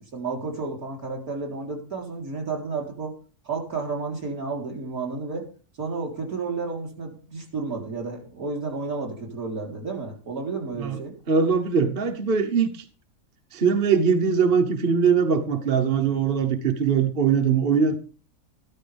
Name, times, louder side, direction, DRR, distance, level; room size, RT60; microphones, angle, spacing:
voice 1, 0.1-3.1 3.4-5.4 5.8-11.1, right 4 dB, 60° right, 0 dB, 4.2 m, -31 dB
voice 2, 11.3-12.8 13.5-17.9, right 6 dB, 40° right, 6 dB, 1.1 m, -21 dB
14.0 x 13.0 x 3.5 m, 0.38 s
omnidirectional pair, 1.7 m